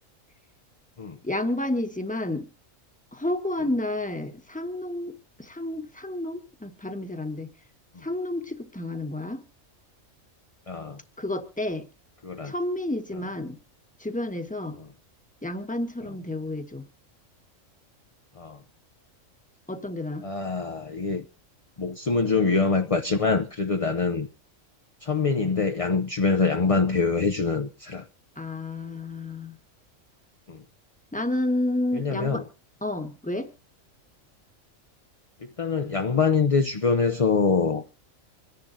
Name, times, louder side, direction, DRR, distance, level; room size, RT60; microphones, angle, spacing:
voice 1, 1.2-2.5 3.1-5.1 5.4-7.5 8.0-9.4 11.2-11.9 12.4-13.6 14.0-14.8 15.4-16.9 19.7-20.3 28.4-29.6 31.1-32.4 32.8-33.5, left 1 dB, 5° left, 1.3 m, -30 dB
voice 2, 10.7-11.0 12.2-12.5 18.4-18.6 20.2-21.2 21.8-24.3 25.0-28.1 30.5-30.6 31.9-32.4 35.6-37.9, left 4 dB, 35° left, 0.7 m, -24 dB
26.0 x 10.5 x 2.7 m
omnidirectional pair, 1.4 m